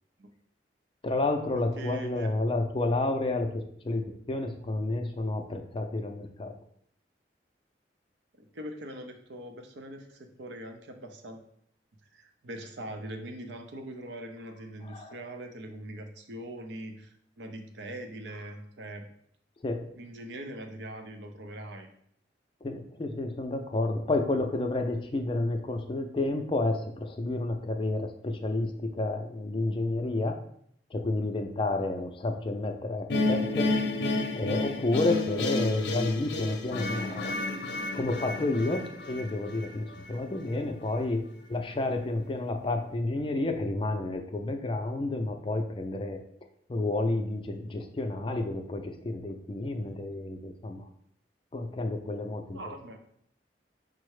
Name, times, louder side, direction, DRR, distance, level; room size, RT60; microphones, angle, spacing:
voice 1, 1.0-6.5 14.8-15.2 19.6-19.9 22.6-30.4 30.9-33.7 34.3-37.3 37.9-41.2 41.5-46.2 46.7-50.8 51.5-52.6, left 2 dB, 30° left, 5 dB, 0.4 m, -30 dB
voice 2, 1.8-2.3 8.5-11.4 12.1-19.1 20.0-21.9 52.5-53.0, right 1 dB, 85° right, 5 dB, 0.6 m, -42 dB
sound 1, 33.1-40.2, left 2 dB, 75° left, 0.6 m, -31 dB
5.3 x 2.0 x 4.7 m, 0.68 s
head